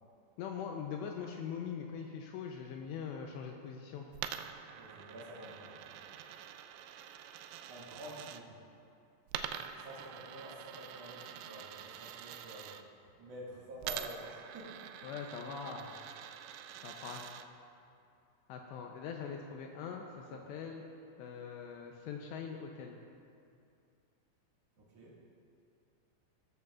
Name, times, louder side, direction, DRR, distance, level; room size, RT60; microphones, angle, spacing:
voice 1, 0.4-4.1 15.0-16.0 16.8-17.3 18.5-20.8 21.2-23.0, left 6 dB, 85° left, 2 dB, 2.6 m, -42 dB
Coin (dropping), 4.1-8.4 9.3-12.8 13.8-17.5, right 10 dB, 85° right, 2.6 m, -45 dB
voice 2, 4.7-6.0 7.3-7.4 7.7-8.7 9.7-14.8 16.1-16.2 20.3-20.5 24.8-25.2, equal, 50° right, -6 dB, 2.0 m, -49 dB
15.0 x 13.5 x 2.4 m, 2.5 s
omnidirectional pair, 5.5 m